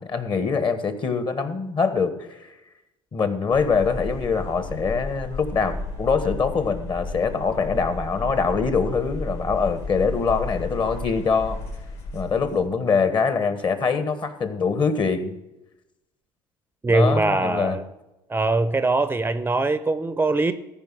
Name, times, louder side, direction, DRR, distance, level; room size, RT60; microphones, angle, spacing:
voice 1, 0.0-2.5 3.1-11.6 12.1-15.4 16.9-17.8, left 5 dB, 40° left, 10 dB, 1.5 m, -24 dB
sound 1, 3.5-12.6, left 2 dB, 60° left, 3.3 m, -33 dB
voice 2, 16.8-17.8 18.3-20.5, right 2 dB, 15° right, 12 dB, 0.6 m, -22 dB
14.0 x 5.1 x 6.3 m, 0.95 s
supercardioid pair, 85°, 13 cm